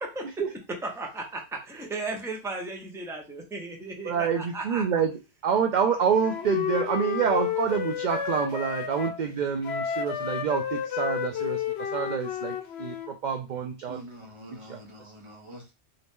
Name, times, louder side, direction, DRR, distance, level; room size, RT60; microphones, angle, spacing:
voice 1, 0.8-4.8, right 2 dB, 5° right, 0.7 m, -35 dB
voice 2, 4.0-5.1 5.4-14.0 14.7-14.8, right 7 dB, 55° right, 0.5 m, -27 dB
Wind instrument woodwind instrument, 6.2-9.2 9.6-13.1, left 8 dB, 70° left, 0.9 m, -31 dB
voice 3, 13.9-15.7, equal, 30° right, 0.9 m, -45 dB
3.9 x 2.8 x 3.5 m
omnidirectional pair, 1.2 m